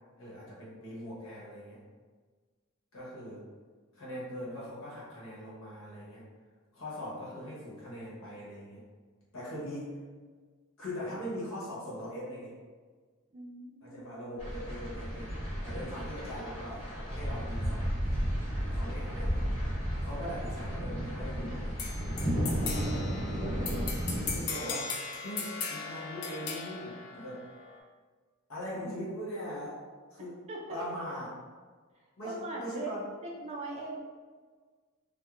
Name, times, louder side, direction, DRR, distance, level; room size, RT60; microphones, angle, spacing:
voice 1, 0.2-1.8 2.9-3.4 3.9-6.2 6.7-8.8 9.3-10.0 10.8-12.5 13.8-15.3 15.6-17.9 18.6-19.5 20.0-21.7 22.8-23.3 24.3-24.9 25.2-27.4 28.5-29.8 30.1-30.4 30.7-31.3 32.2-33.0, equal, 70° left, -7 dB, 0.9 m, -41 dB
voice 2, 13.3-14.0 30.5-30.8 32.2-32.9 33.2-34.0, right 2 dB, 30° right, -3 dB, 0.4 m, -41 dB
sound 1, 14.4-24.4, equal, 25° left, 1.1 m, -33 dB
sound 2, 21.8-27.8, left 5 dB, 90° left, 0.4 m, -38 dB
2.3 x 2.1 x 3.0 m, 1.5 s
head